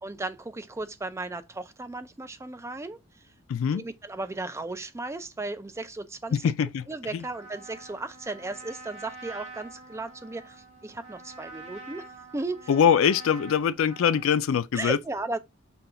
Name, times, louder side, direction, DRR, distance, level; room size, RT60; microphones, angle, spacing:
voice 1, 0.0-3.0 3.7-6.4 6.9-12.1 12.3-12.7 14.7-15.4, right 2 dB, 15° right, 0.4 m, -35 dB
voice 2, 3.5-3.8 6.3-6.9 12.7-15.0, left 7 dB, 75° left, 0.4 m, -23 dB
Trumpet, 7.2-14.4, right 3 dB, 90° right, 1.5 m, -46 dB
5.8 x 2.3 x 3.7 m
head